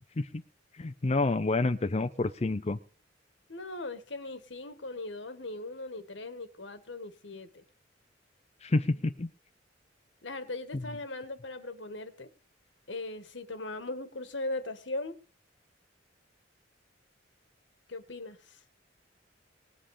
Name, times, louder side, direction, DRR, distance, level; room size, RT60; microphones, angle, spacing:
voice 1, 0.8-2.8 8.6-9.3, left 2 dB, 35° left, 9 dB, 0.6 m, -28 dB
voice 2, 3.5-7.5 10.2-12.3 12.9-15.1 17.9-18.4, left 2 dB, 80° left, 11 dB, 1.7 m, -39 dB
19.5 x 7.7 x 5.0 m, 0.38 s
head